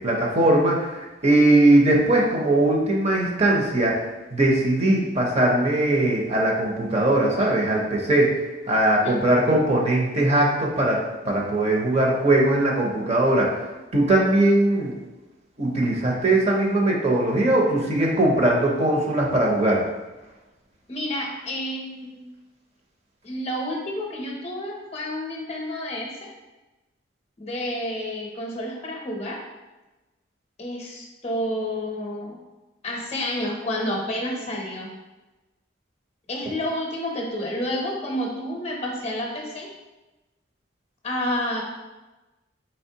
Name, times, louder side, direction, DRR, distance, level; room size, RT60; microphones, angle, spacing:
voice 1, 0.0-4.0 4.3-8.3 8.7-11.0 11.3-13.5 13.9-14.9 15.6-19.8, right 1 dB, 35° right, -1 dB, 0.5 m, -20 dB
voice 2, 20.9-22.2 23.2-26.3 27.4-29.4 30.6-32.4 32.8-34.9 36.3-39.7 41.0-41.6, left 1 dB, 30° left, 0 dB, 0.6 m, -29 dB
4.3 x 3.1 x 2.7 m, 1.1 s
head